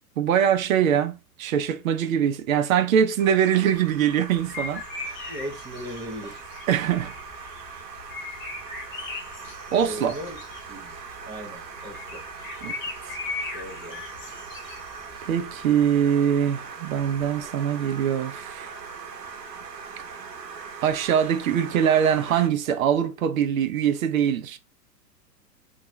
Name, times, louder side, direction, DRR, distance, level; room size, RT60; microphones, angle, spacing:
voice 1, 0.2-5.3 6.7-7.1 9.7-10.2 12.6-12.7 15.2-18.7 20.8-24.6, right 9 dB, 55° right, 0.7 m, -23 dB
sound 1, 3.2-22.5, right 5 dB, 90° right, 0.8 m, -41 dB
sound 2, 4.4-16.1, left 4 dB, 25° left, 1.1 m, -39 dB
voice 2, 5.3-6.4 9.8-10.4 10.7-11.0 11.3-12.2 13.5-14.0, equal, 10° right, 0.4 m, -37 dB
3.6 x 2.4 x 3.1 m
hypercardioid pair, 115°, 49 cm